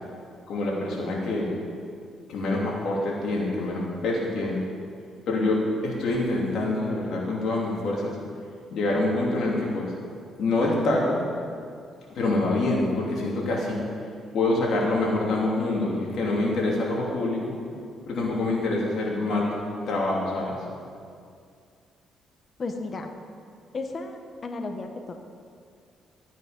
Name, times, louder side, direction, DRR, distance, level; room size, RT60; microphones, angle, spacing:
voice 1, 0.5-1.5 2.3-4.6 5.3-8.2 8.7-9.9 10.4-11.2 12.1-13.8 14.3-17.6 18.1-19.5 19.9-20.6, left 2 dB, 70° left, -3 dB, 3.1 m, -26 dB
voice 2, 22.6-23.1 23.7-25.2, left 3 dB, 40° left, 5 dB, 1.1 m, -34 dB
13.5 x 9.2 x 5.3 m, 2.3 s
cardioid pair, 90°, 0 cm